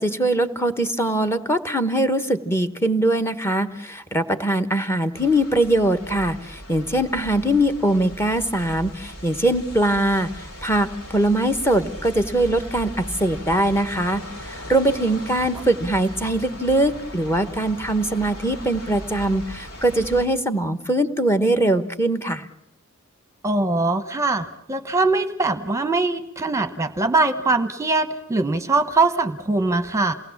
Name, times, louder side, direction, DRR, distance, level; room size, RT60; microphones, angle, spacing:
voice 1, 0.0-10.3 10.6-22.5, right 1 dB, 10° left, 9 dB, 1.2 m, -22 dB
sound 1, 5.1-20.3, equal, 75° left, 3.4 m, -38 dB
voice 2, 23.4-30.1, right 3 dB, 15° right, 9 dB, 1.0 m, -22 dB
28.5 x 19.0 x 7.2 m, 0.83 s
head